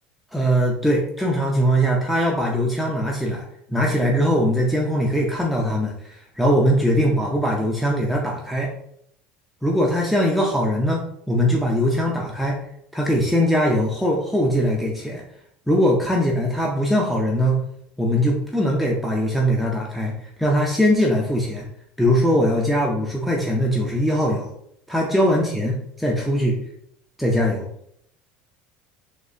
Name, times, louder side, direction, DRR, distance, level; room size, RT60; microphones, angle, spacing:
voice 1, 0.3-3.4 3.7-8.7 9.6-12.6 12.9-15.2 15.7-17.6 18.0-20.1 20.4-21.7 22.0-24.5 24.9-25.7 26.0-26.6 27.2-27.7, equal, ahead, -3 dB, 0.7 m, -21 dB
4.1 x 2.7 x 3.3 m, 0.70 s
supercardioid pair, 110°, 4 cm